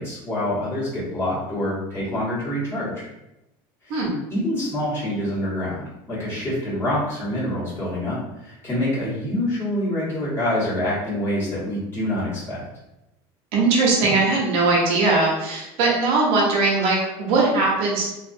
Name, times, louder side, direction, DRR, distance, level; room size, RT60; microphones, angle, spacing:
voice 1, 0.0-3.1 3.8-4.0 4.3-12.6, left 1 dB, 20° left, -9 dB, 1.5 m, -26 dB
voice 2, 13.5-18.1, right 3 dB, 65° right, -3 dB, 0.8 m, -20 dB
2.7 x 2.4 x 2.6 m, 0.92 s
supercardioid pair, 130°, 11 cm